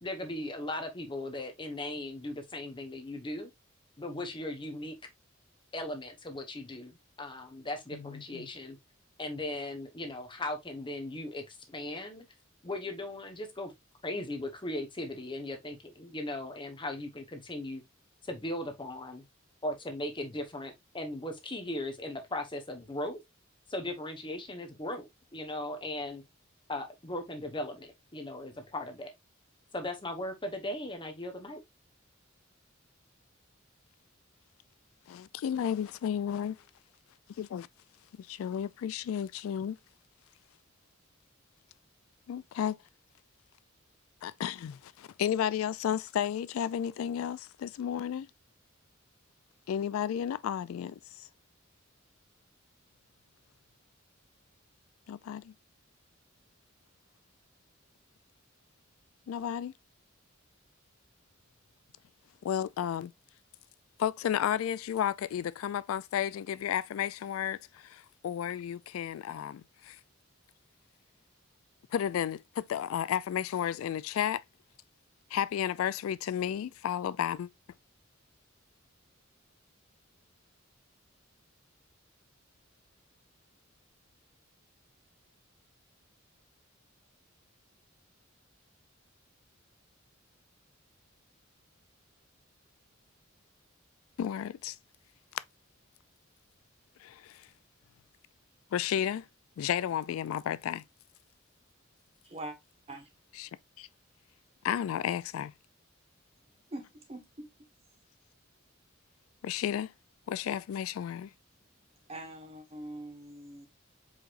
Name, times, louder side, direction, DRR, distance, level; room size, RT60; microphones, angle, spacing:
voice 1, 0.0-3.5 4.0-4.9 5.7-8.8 9.2-12.2 12.6-13.7 14.0-17.8 18.2-19.2 19.6-23.2 23.7-26.2 26.7-29.1 29.7-31.6, left 1 dB, 25° left, 1.1 m, -38 dB
voice 2, 7.9-8.5 35.1-36.6 37.4-37.7 38.2-39.8 42.3-42.8 44.2-48.3 49.7-51.3 55.1-55.5 59.3-59.7 62.4-63.1 64.0-70.0 71.9-74.4 75.3-77.5 94.2-94.8 97.0-97.5 98.7-99.3 99.6-100.8 103.4-103.5 103.8-103.9 104.6-105.5 109.4-109.9 110.3-111.3, left 9 dB, 85° left, 0.3 m, -33 dB
voice 3, 102.2-102.6 102.9-103.1 106.7-107.5 112.1-113.7, right 1 dB, 30° right, 1.4 m, -43 dB
4.8 x 4.0 x 2.5 m
head